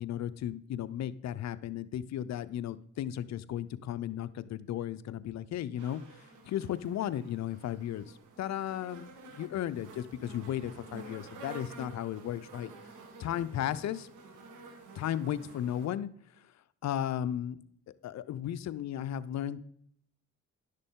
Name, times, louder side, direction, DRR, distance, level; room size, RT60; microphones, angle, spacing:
voice 1, 0.0-6.0 6.5-12.7 13.2-14.1 14.9-16.1 16.8-17.6 18.0-19.6, left 11 dB, 60° left, 14 dB, 0.6 m, -35 dB
sound 1, 5.8-15.9, right 3 dB, 85° right, 1.7 m, -50 dB
11.0 x 6.6 x 3.7 m, 0.67 s
cardioid pair, 90°, 30 cm